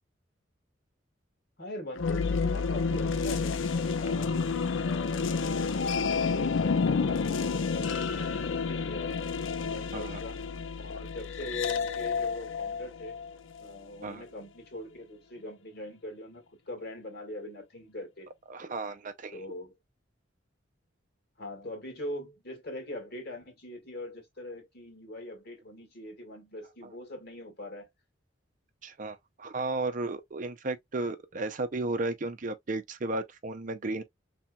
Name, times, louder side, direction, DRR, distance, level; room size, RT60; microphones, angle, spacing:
voice 1, 1.6-3.6 4.0-9.2 9.6-10.4 10.8-13.2 13.6-18.3 19.3-19.7 21.4-27.9, left 1 dB, 55° left, 1.8 m, -42 dB
sound 1, 2.0-13.8, left 5 dB, 85° left, 0.5 m, -30 dB
voice 2, 18.5-19.4 26.8-26.9 28.8-34.0, right 2 dB, 40° right, 0.5 m, -34 dB
4.3 x 3.4 x 2.2 m
head